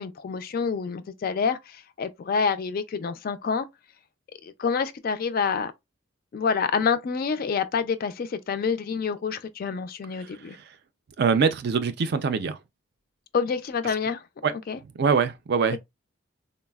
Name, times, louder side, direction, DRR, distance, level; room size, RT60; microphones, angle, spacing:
voice 1, 0.0-3.7 4.4-5.7 6.3-10.6 13.3-14.2 14.7-14.8, left 5 dB, 45° left, 0.3 m, -27 dB
voice 2, 10.2-10.6 11.2-12.6 14.4-14.5 15.0-15.8, right 5 dB, 50° right, 0.4 m, -24 dB
3.9 x 2.0 x 2.2 m
head